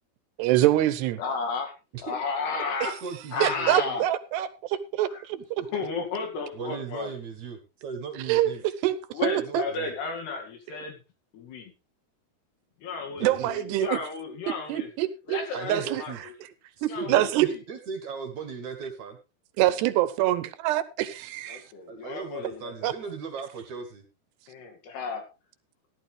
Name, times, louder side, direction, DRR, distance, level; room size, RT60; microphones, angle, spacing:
voice 1, 0.4-1.2 3.4-5.4 8.2-8.5 8.8-9.0 9.2-9.6 13.2-14.0 14.7-15.4 15.7-16.3 16.8-17.5 19.6-21.6 22.8-22.9, right 14 dB, 80° right, 14 dB, 3.0 m, -25 dB
voice 2, 1.2-1.7 2.0-3.0 3.3-4.1 5.1-5.2 5.7-7.1 9.1-11.0 11.3-11.7 12.8-14.9 15.3-16.3 16.9-17.6 19.7-19.8 21.5-22.9 24.5-25.2, left 4 dB, 70° left, 4 dB, 4.3 m, -33 dB
voice 3, 3.0-4.0 5.6-5.7 6.5-8.6 9.4-9.9 13.2-13.5 15.5-16.2 16.8-19.2 21.9-24.0, right 5 dB, 55° right, 6 dB, 2.4 m, -37 dB
15.5 x 11.5 x 3.4 m, 0.28 s
omnidirectional pair, 4.8 m